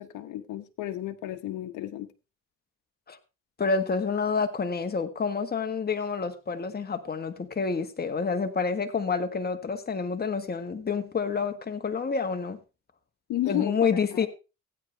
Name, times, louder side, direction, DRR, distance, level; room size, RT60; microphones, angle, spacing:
voice 1, 0.0-2.1 13.3-13.8 14.1-14.3, left 14 dB, 85° left, 1.0 m, -32 dB
voice 2, 3.6-12.6 13.5-14.3, left 5 dB, 30° left, 1.6 m, -28 dB
15.5 x 9.4 x 3.3 m
cardioid pair, 90°, 30 cm